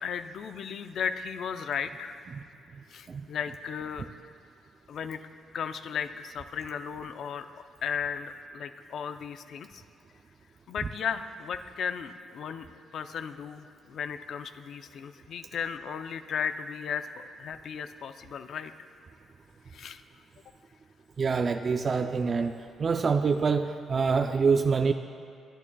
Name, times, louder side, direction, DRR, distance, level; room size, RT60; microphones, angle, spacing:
voice 1, 0.0-2.2 2.9-4.1 4.9-5.2 5.5-7.5 7.8-9.8 10.7-18.7 19.7-20.0, left 7 dB, 65° left, 9 dB, 0.6 m, -35 dB
voice 2, 21.2-22.5 22.8-24.9, right 5 dB, 40° right, 6 dB, 0.5 m, -25 dB
30.0 x 11.0 x 2.3 m, 2.3 s
cardioid pair, 90°, 0 cm